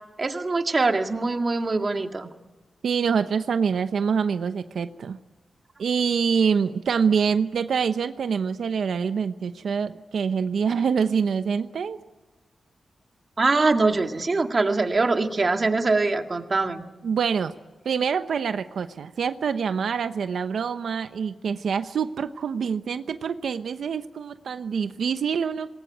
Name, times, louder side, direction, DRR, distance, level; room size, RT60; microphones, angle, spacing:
voice 1, 0.2-2.3 13.4-16.8, right 3 dB, 30° right, 5 dB, 1.9 m, -23 dB
voice 2, 2.8-5.2 5.8-12.0 17.0-17.5 17.8-25.7, right 6 dB, 90° right, 10 dB, 0.9 m, -25 dB
27.0 x 20.5 x 9.3 m, 1.2 s
wide cardioid pair, 160°, 0 cm